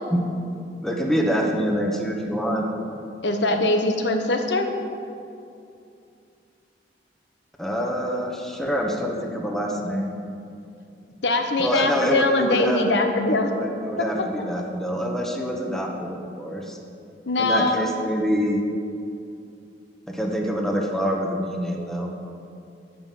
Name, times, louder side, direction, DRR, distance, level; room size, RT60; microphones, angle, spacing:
voice 1, 0.8-2.7 7.6-10.2 11.6-12.8 13.5-16.8 17.4-18.6 20.1-22.1, equal, ahead, 0 dB, 1.2 m, -26 dB
voice 2, 3.2-4.7 11.2-13.5 17.3-17.8, left 2 dB, 75° left, 5 dB, 1.2 m, -22 dB
14.0 x 5.6 x 7.5 m, 2.5 s
head